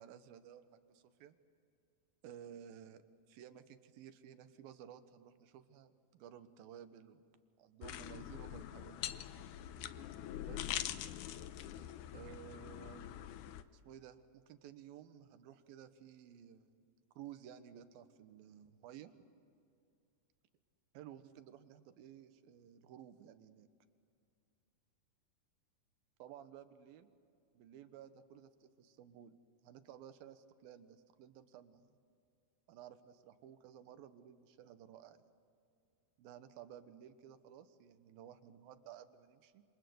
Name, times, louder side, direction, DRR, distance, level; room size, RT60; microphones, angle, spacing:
voice 1, 0.0-1.4 2.2-3.0 3.3-7.3 7.6-9.2 10.4-10.6 12.1-13.1 13.7-16.8 17.2-19.1 20.9-23.7 26.2-27.1 27.5-29.4 29.6-32.0 32.7-35.3 36.2-39.6, right 9 dB, 75° right, 10 dB, 2.8 m, -55 dB
sound 1, 7.8-13.6, left 12 dB, 75° left, 2.0 m, -44 dB
27.0 x 26.5 x 7.9 m, 2.4 s
omnidirectional pair, 4.4 m